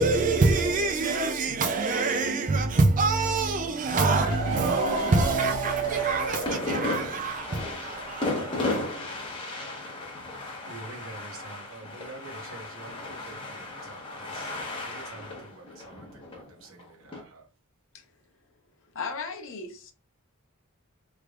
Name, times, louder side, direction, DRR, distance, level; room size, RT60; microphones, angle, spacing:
voice 1, 0.0-8.9, right 3 dB, 35° right, 0.4 m, -26 dB
sound 1, 3.6-7.3 7.6-7.7 8.0-8.1, right 4 dB, 85° right, 1.2 m, -31 dB
sound 2, 5.7-17.2, left 2 dB, 25° left, 1.0 m, -35 dB
voice 2, 10.7-17.4, right 3 dB, 60° right, 0.9 m, -46 dB
voice 3, 18.9-19.9, left 4 dB, 60° left, 0.7 m, -36 dB
3.3 x 3.2 x 2.4 m
head